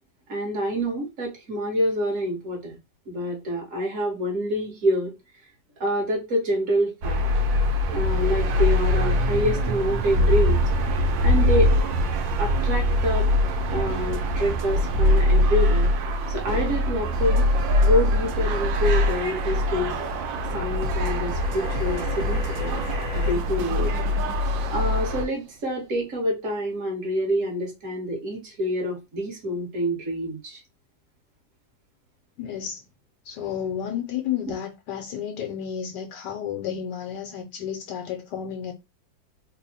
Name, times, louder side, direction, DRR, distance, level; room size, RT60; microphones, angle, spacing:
voice 1, 0.3-2.8 3.1-5.1 5.8-7.2 7.9-10.6 11.2-11.7 12.4-13.3 13.7-15.9 16.3-17.5 17.8-20.0 20.5-22.8 23.1-24.0 24.3-30.6, equal, 45° right, 1.5 m, -27 dB
sound 1, 7.0-25.3, left 1 dB, 85° right, 1.4 m, -23 dB
sound 2, 13.9-25.8, right 1 dB, 70° right, 1.2 m, -38 dB
sound 3, 21.3-23.4, left 2 dB, 25° left, 0.6 m, -39 dB
voice 2, 32.4-32.8 33.2-38.7, left 9 dB, 75° left, 1.2 m, -31 dB
3.4 x 2.1 x 4.0 m
omnidirectional pair, 2.0 m